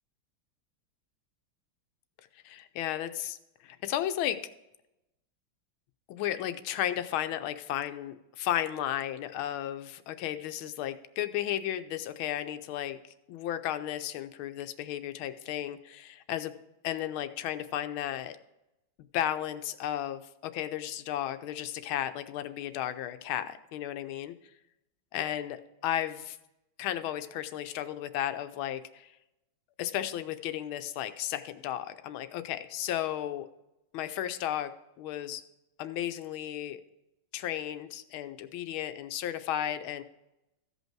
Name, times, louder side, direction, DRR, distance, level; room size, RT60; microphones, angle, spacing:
voice 1, 2.4-3.4 3.6-4.4 6.1-13.0 13.3-16.5 16.8-18.4 19.1-24.3 25.1-26.4 26.8-29.1 29.8-33.5 33.9-35.4 35.8-36.8 37.3-40.0, left 11 dB, 80° left, 10 dB, 1.4 m, -34 dB
14.5 x 5.5 x 4.5 m, 0.90 s
omnidirectional pair, 2.2 m